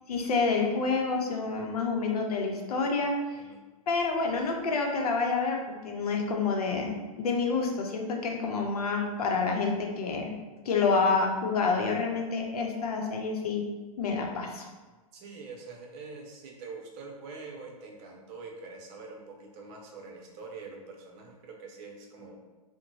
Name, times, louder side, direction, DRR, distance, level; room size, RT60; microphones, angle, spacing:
voice 1, 0.1-3.1 3.9-5.6 5.8-10.3 10.7-13.6 14.0-14.7, left 4 dB, 85° left, 2 dB, 0.7 m, -28 dB
voice 2, 15.1-22.4, right 4 dB, 45° right, 0 dB, 0.7 m, -45 dB
3.9 x 2.1 x 3.0 m, 1.2 s
hypercardioid pair, 130°, 19 cm